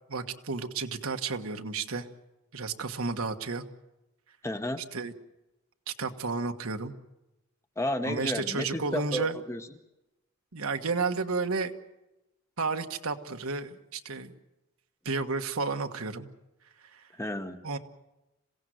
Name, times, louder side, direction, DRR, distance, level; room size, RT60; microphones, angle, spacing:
voice 1, 0.1-2.1 2.5-3.6 4.9-5.1 5.9-6.9 8.0-9.4 10.5-11.7 12.6-14.3 15.0-16.3 16.9-17.0 17.6-17.8, right 4 dB, 75° right, 6 dB, 1.4 m, -32 dB
voice 2, 4.4-4.8 7.8-9.6 17.2-17.6, left 1 dB, 10° left, 8 dB, 0.9 m, -32 dB
27.0 x 17.0 x 7.9 m, 0.96 s
head